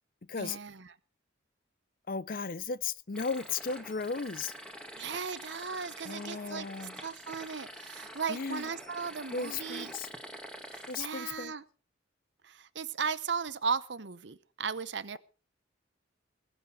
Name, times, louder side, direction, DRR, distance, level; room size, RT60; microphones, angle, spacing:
voice 1, 0.4-0.9 4.9-9.9 10.7-11.6 12.4-15.2, right 5 dB, 70° right, 0.8 m, -36 dB
voice 2, 2.1-4.5 6.0-7.0 8.3-8.7 9.3-10.1 10.9-11.5, left 5 dB, 50° left, 0.7 m, -35 dB
sound 1, 3.1-11.1, equal, 5° left, 2.4 m, -46 dB
20.0 x 8.2 x 6.4 m
head